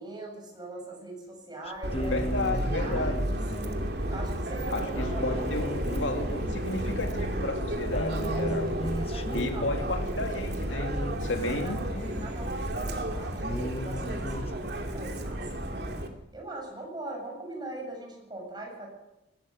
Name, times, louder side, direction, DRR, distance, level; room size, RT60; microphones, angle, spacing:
voice 1, 0.0-3.7 4.1-6.0 8.3-9.8 11.5-15.9 16.3-18.9, right 2 dB, 25° right, 1 dB, 7.4 m, -41 dB
sound 1, 1.7-12.7 13.1-13.2 13.4-14.5, equal, 30° left, 1.3 m, -37 dB
Subway metro underground, 1.8-16.1, right 1 dB, 60° right, 2.7 m, -32 dB
voice 2, 2.1-3.2 4.7-8.7 9.3-10.9 11.2-11.8, left 2 dB, 85° left, 5 dB, 2.9 m, -32 dB
20.0 x 16.0 x 8.0 m, 0.96 s
head